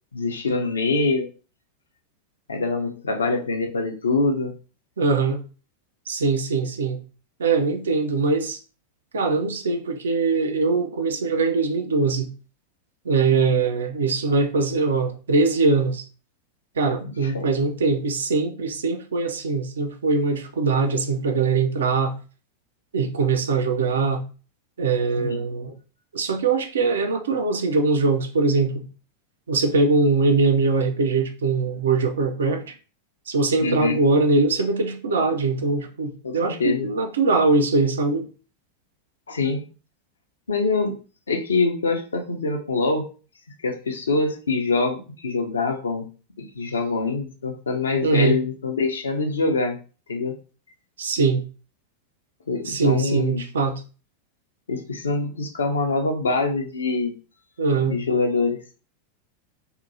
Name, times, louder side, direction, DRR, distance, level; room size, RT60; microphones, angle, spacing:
voice 1, 0.1-1.3 2.5-4.5 13.3-13.6 17.0-17.5 25.2-25.4 33.6-34.0 36.2-36.9 39.3-39.7 40.5-41.0 41.3-43.1 43.6-46.1 46.4-49.8 50.1-50.4 52.5-53.4 54.7-57.1 57.8-58.6, left 3 dB, 70° left, 0.5 m, -24 dB
voice 2, 5.0-5.4 6.1-7.0 7.4-8.6 9.1-12.3 13.1-16.0 16.8-22.1 22.9-24.2 24.8-25.7 26.1-28.9 29.5-32.7 33.3-38.3 48.0-48.4 51.0-51.4 52.7-53.8 57.6-58.0, right 4 dB, 65° right, 0.4 m, -22 dB
2.8 x 2.6 x 2.5 m
figure-of-eight pair, 90°, 0 cm